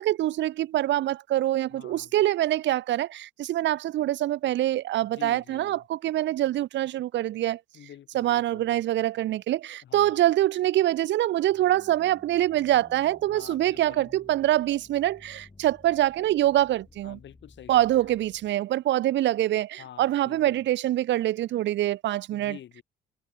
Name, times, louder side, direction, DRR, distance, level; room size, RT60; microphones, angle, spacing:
voice 1, 0.0-7.6 8.1-17.2 17.7-22.6, right 14 dB, 70° right, 0.6 m, -25 dB
voice 2, 1.7-2.1 5.0-5.9 7.7-8.8 9.8-10.2 13.3-14.2 17.0-18.2 19.8-20.7 22.3-22.8, left 11 dB, 70° left, 3.8 m, -47 dB
Violin down, 11.5-18.5, left 3 dB, 25° left, 3.5 m, -55 dB
supercardioid pair, 65°, 19 cm